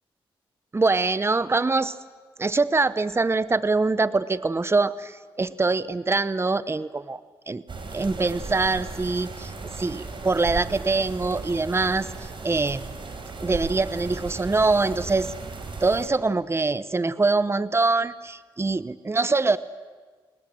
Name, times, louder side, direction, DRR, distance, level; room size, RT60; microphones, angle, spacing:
voice 1, 0.7-1.9 2.4-7.2 7.5-7.6 7.9-9.5 9.8-12.9 13.4-15.3 15.8-19.6, right 3 dB, 25° right, 16 dB, 0.9 m, -24 dB
sound 1, 7.7-16.1, right 4 dB, 55° right, 4.6 m, -36 dB
28.5 x 19.0 x 7.8 m, 1.5 s
supercardioid pair, 55°, 10 cm